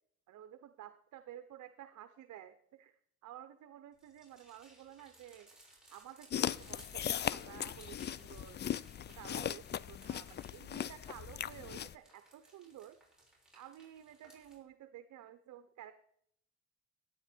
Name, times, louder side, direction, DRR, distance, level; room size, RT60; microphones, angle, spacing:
voice 1, 0.3-5.5 5.9-8.6 9.1-13.0 13.5-15.9, right 11 dB, 70° right, 10 dB, 0.8 m, -52 dB
sound 1, 3.9-14.6, right 2 dB, ahead, 6.3 m, -62 dB
sound 2, 6.3-11.9, left 10 dB, 35° left, 0.4 m, -38 dB
16.5 x 9.0 x 4.4 m, 0.69 s
cardioid pair, 90°, 30 cm